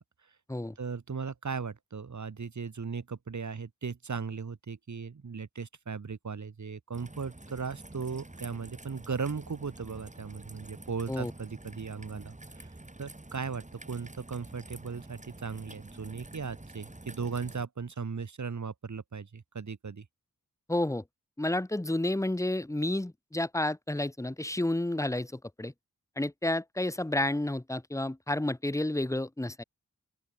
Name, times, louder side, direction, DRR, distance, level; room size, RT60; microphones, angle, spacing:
voice 1, 0.8-12.7 13.0-20.0, right 5 dB, 60° right, 1.3 m, -37 dB
Raindrop / Trickle dribble, 6.9-17.7, right 2 dB, 20° right, 2.6 m, -48 dB
voice 2, 20.7-21.0 21.4-25.7 26.2-29.6, left 1 dB, 10° left, 0.9 m, -30 dB
open air
wide cardioid pair, 75°, 33 cm